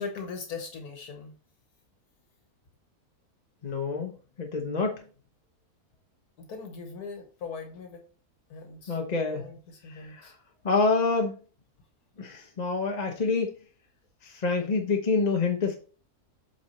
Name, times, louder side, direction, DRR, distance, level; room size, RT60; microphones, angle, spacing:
voice 1, 0.0-1.3 6.4-8.0 8.5-9.0 9.3-10.3, left 5 dB, 75° left, 5 dB, 1.5 m, -40 dB
voice 2, 3.6-4.1 4.4-4.9 8.9-9.4 9.9-10.3 10.6-11.3 12.2-13.5 14.2-15.8, left 4 dB, 35° left, 3 dB, 0.8 m, -27 dB
7.9 x 4.3 x 4.2 m, 0.38 s
omnidirectional pair, 1.7 m